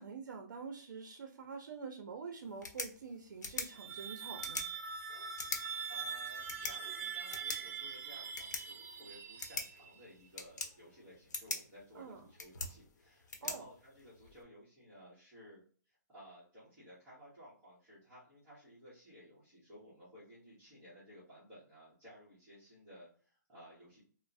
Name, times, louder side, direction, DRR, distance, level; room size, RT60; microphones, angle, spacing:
voice 1, 0.0-4.7 11.9-12.2 13.4-13.7, right 5 dB, 90° right, 4 dB, 0.5 m, -46 dB
sound 1, 2.4-14.4, left 4 dB, 70° left, 0.8 m, -45 dB
sound 2, 3.4-10.1, right 6 dB, 50° right, 0.6 m, -43 dB
voice 2, 5.9-15.6 15.9-24.0, equal, 10° right, -12 dB, 1.1 m, -57 dB
3.0 x 2.0 x 2.5 m, 0.43 s
hypercardioid pair, 175°, 10 cm